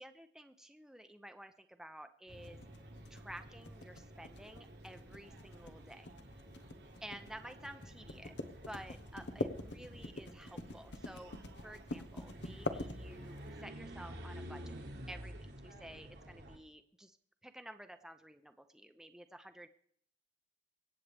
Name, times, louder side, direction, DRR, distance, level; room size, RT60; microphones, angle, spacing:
voice 1, 0.0-2.6 3.1-6.1 7.0-8.3 8.7-17.2 17.4-19.7, right 1 dB, 5° right, 7 dB, 0.6 m, -52 dB
sound 1, 2.3-16.6, equal, 65° right, 1.6 m, -51 dB
sound 2, 2.4-13.5, left 2 dB, 80° left, 1.0 m, -43 dB
24.5 x 8.2 x 3.4 m, 0.66 s
head